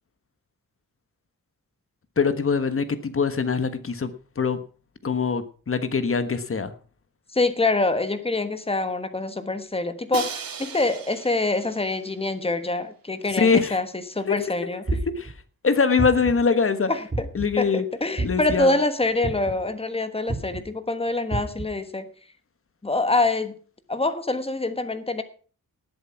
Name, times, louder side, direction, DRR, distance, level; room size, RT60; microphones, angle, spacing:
voice 1, 2.2-4.6 5.0-6.7 13.4-13.8 14.3-14.4 15.2-15.3 15.6-16.9 17.3-17.8 18.2-18.8, left 5 dB, 40° left, 11 dB, 1.4 m, -23 dB
voice 2, 7.3-14.8 16.9-17.3 17.6-22.1 22.8-23.6 23.9-25.2, left 2 dB, 15° left, 11 dB, 1.3 m, -25 dB
Crash cymbal, 10.1-12.1, right 6 dB, 75° right, 2.1 m, -36 dB
sound 1, 14.9-15.3 16.0-16.4 17.1-17.6 18.2-18.5 19.2-19.6 20.3-20.6 21.3-21.6, right 2 dB, 25° right, 3.4 m, -28 dB
18.5 x 8.0 x 5.8 m, 0.40 s
wide cardioid pair, 175°, 35 cm